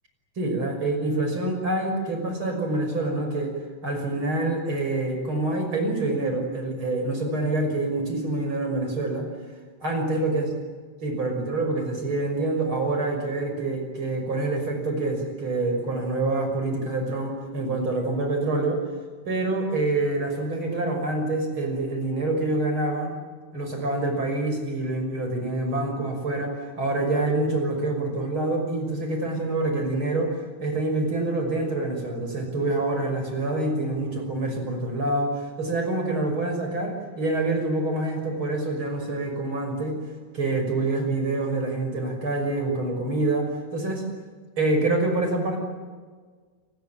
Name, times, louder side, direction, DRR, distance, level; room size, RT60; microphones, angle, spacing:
voice 1, 0.4-3.5 3.8-9.3 9.8-10.5 11.0-18.8 19.2-23.1 23.5-40.0 40.3-44.0 44.6-45.6, right 2 dB, 30° right, 4 dB, 6.5 m, -26 dB
29.0 x 20.5 x 9.2 m, 1.5 s
omnidirectional pair, 4.6 m